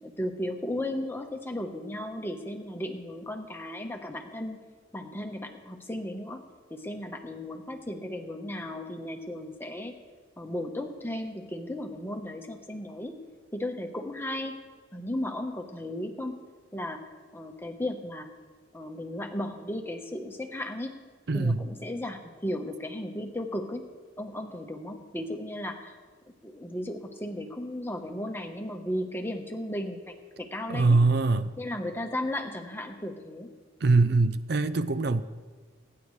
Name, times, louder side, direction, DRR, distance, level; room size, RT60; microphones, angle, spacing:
voice 1, 0.0-4.6 4.9-6.4 6.7-9.9 10.4-13.1 13.5-14.6 14.9-16.4 16.7-17.0 17.3-18.3 18.7-20.9 21.3-23.8 24.2-26.0 26.4-31.0 31.6-33.5, left 1 dB, 10° left, 4 dB, 1.1 m, -35 dB
voice 2, 21.3-21.7 30.7-31.6 33.8-35.2, right 3 dB, 60° right, 12 dB, 0.5 m, -23 dB
28.5 x 9.6 x 3.2 m, 1.5 s
head